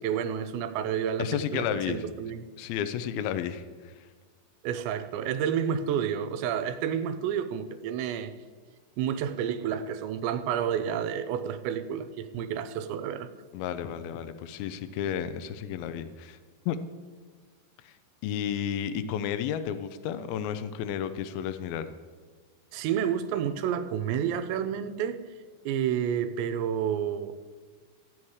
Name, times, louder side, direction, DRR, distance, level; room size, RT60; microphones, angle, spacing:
voice 1, 0.0-2.5 4.6-8.3 9.0-13.3 22.7-25.2 25.7-27.3, right 8 dB, 90° right, 2.9 m, -30 dB
voice 2, 1.2-2.0 2.6-4.1 13.5-16.4 16.7-16.8 17.8-17.9 18.2-21.9, left 9 dB, 85° left, 2.1 m, -32 dB
15.5 x 8.6 x 4.8 m
omnidirectional pair, 5.0 m